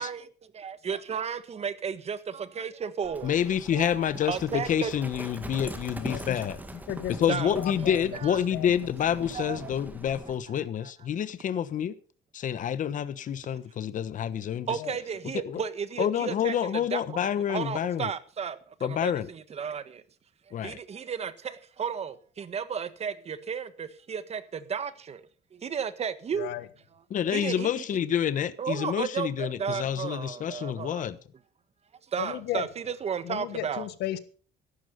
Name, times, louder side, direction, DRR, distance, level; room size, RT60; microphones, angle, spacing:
voice 1, 0.0-3.3 3.7-4.9 7.3-7.6 8.1-8.4 9.3-9.7 10.5-10.6 14.7-20.0 20.5-25.2 25.5-26.5 27.3-27.7 28.6-31.1 32.1-33.9, right 7 dB, 40° right, 1.5 m, -34 dB
Livestock farm animals working animals, 3.0-10.4, right 2 dB, 10° right, 2.1 m, -42 dB
voice 2, 3.2-6.6 7.2-11.9 12.3-14.7 15.3-15.6 16.0-18.1 18.8-19.3 20.5-20.8 27.1-31.2, left 9 dB, 50° left, 1.2 m, -28 dB
voice 3, 6.0-6.4 6.7-8.2 8.5-8.7 14.7-15.0 26.4-26.7 32.2-32.7 33.2-34.2, left 13 dB, 80° left, 1.4 m, -35 dB
13.5 x 12.0 x 5.3 m
cardioid pair, 110°, 17 cm